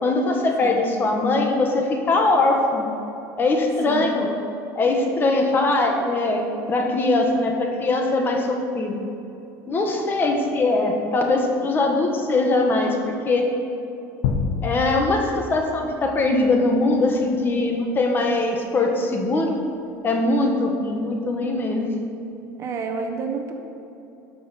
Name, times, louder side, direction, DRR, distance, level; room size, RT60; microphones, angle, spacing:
voice 1, 0.0-2.9 3.4-4.3 4.7-9.0 9.7-13.5 14.6-19.5 20.0-22.0, left 2 dB, 25° left, 2 dB, 1.4 m, -21 dB
sound 1, 14.2-16.8, left 5 dB, 80° left, 1.0 m, -28 dB
voice 2, 22.6-23.5, right 5 dB, 35° right, 4 dB, 1.1 m, -29 dB
12.5 x 6.1 x 5.8 m, 2.9 s
supercardioid pair, 130°, 8 cm